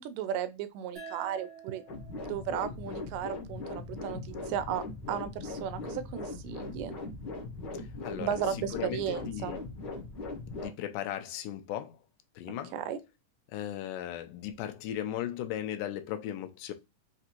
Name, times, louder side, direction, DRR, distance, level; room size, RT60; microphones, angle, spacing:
voice 1, 0.0-1.8 2.3-7.0 8.2-9.6 12.7-13.0, right 9 dB, 85° right, 2.2 m, -35 dB
sound 1, 0.9-4.1, right 4 dB, 60° right, 0.5 m, -50 dB
sound 2, 1.9-10.7, left 3 dB, 65° left, 1.0 m, -40 dB
voice 2, 8.0-8.4 8.7-9.6 10.5-12.0 12.4-12.8 13.5-16.7, left 11 dB, 85° left, 2.2 m, -37 dB
5.6 x 2.5 x 2.8 m
omnidirectional pair, 3.8 m